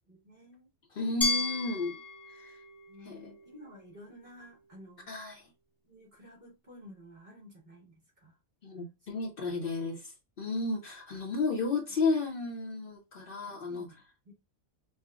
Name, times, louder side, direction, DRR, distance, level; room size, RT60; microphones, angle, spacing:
voice 1, 0.1-0.7 2.9-5.1 5.9-8.3 13.2-14.3, left 1 dB, 45° right, 2.3 m, -53 dB
voice 2, 0.9-2.0 2.3-2.6 3.0-3.3 5.1-5.5 8.6-13.9, left 3 dB, 60° left, 0.9 m, -33 dB
Glass, 1.2-4.1, left 3 dB, 25° left, 0.5 m, -35 dB
5.5 x 2.1 x 2.3 m
omnidirectional pair, 1.1 m